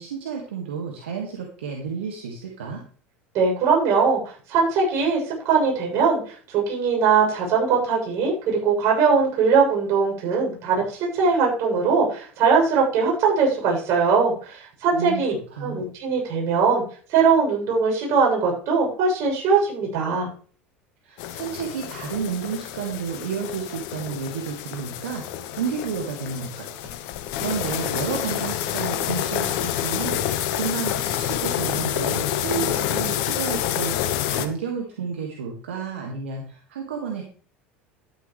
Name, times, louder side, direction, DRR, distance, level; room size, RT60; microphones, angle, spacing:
voice 1, 0.0-2.8 14.9-15.2 15.5-15.8 21.0-37.2, right 6 dB, 75° right, 1 dB, 2.1 m, -31 dB
voice 2, 3.3-4.2 4.5-15.3 15.6-16.8 17.1-20.3, right 5 dB, 55° right, -1 dB, 7.5 m, -21 dB
sound 1, 21.2-34.5, left 11 dB, 60° left, 1.2 m, -28 dB
12.5 x 11.5 x 3.3 m, 0.42 s
figure-of-eight pair, 75°, 7 cm